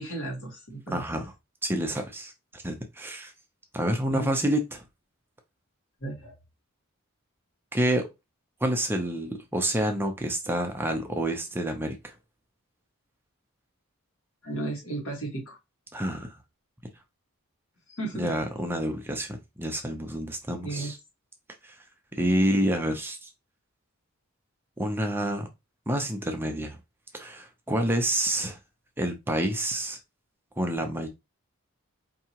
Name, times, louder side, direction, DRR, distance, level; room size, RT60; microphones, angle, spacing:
voice 1, 0.0-1.0 4.1-4.3 6.0-6.3 14.4-15.6 17.9-18.3 20.6-20.9, right 2 dB, 70° left, 1.6 m, -34 dB
voice 2, 0.9-1.3 1.6-3.3 3.7-4.8 7.7-8.1 8.6-12.1 15.9-16.4 18.2-21.0 21.6-21.8 22.2-23.3 24.8-25.5 25.9-26.8 27.1-28.6 29.0-30.0 30.6-31.1, right 1 dB, 10° right, 0.5 m, -28 dB
4.6 x 2.8 x 2.8 m
head